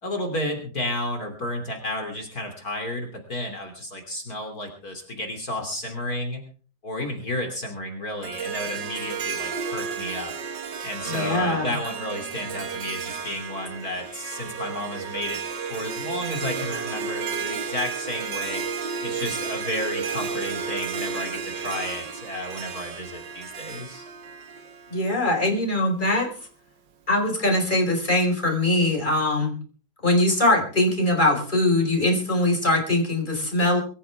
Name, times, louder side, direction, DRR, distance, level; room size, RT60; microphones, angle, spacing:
voice 1, 0.0-6.4 6.8-10.3 10.8-15.4 15.7-18.6 19.0-24.1, left 1 dB, 50° left, 3 dB, 3.5 m, -32 dB
Harp, 8.2-25.5, right 6 dB, 70° right, 2.0 m, -32 dB
voice 2, 11.1-11.7 24.9-26.3 27.1-29.5 30.0-33.8, left 1 dB, 25° left, 1 dB, 5.3 m, -22 dB
24.5 x 14.0 x 3.6 m, 0.39 s
omnidirectional pair, 2.0 m